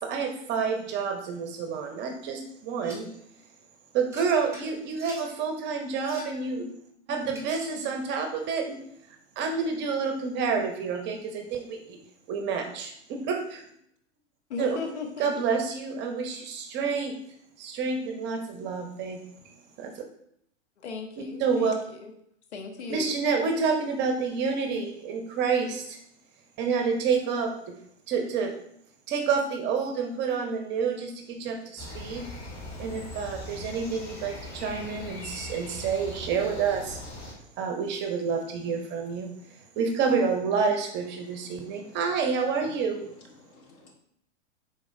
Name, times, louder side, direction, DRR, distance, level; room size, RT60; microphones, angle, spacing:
voice 1, 0.0-3.1 3.9-6.7 7.1-8.8 9.4-12.0 12.3-13.6 14.6-14.8 15.2-17.2 17.6-19.2 19.8-20.0 21.2-21.7 22.9-26.0 26.6-27.7 28.1-28.5 29.1-32.2 32.8-37.0 37.6-39.3 39.8-43.0, right 5 dB, 30° right, 4 dB, 0.7 m, -28 dB
sound 1, 2.8-3.2 4.1-5.3 5.9-6.4 7.3-7.9, equal, 10° right, 1.1 m, -46 dB
voice 2, 14.5-15.5 20.8-22.1 22.5-23.1, left 4 dB, 70° left, 4 dB, 0.8 m, -37 dB
sound 2, 31.8-37.3, left 1 dB, 25° left, 1.6 m, -40 dB
voice 3, 41.5-42.0 43.4-43.9, left 2 dB, 45° left, -1 dB, 1.6 m, -55 dB
4.8 x 3.8 x 2.6 m, 0.71 s
hypercardioid pair, 105°, 36 cm